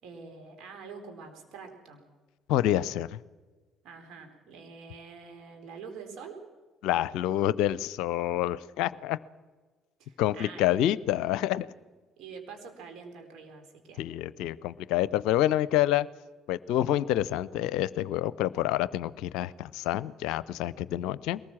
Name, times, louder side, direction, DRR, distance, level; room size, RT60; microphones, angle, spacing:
voice 1, 0.0-2.0 3.8-6.4 10.0-10.7 12.2-14.0, right 5 dB, 60° right, 3 dB, 4.3 m, -46 dB
voice 2, 2.5-3.2 6.8-9.2 10.2-11.7 14.0-16.1 16.5-21.4, left 13 dB, 65° left, 19 dB, 0.6 m, -27 dB
22.5 x 19.5 x 7.4 m, 1.3 s
figure-of-eight pair, 50°, 0 cm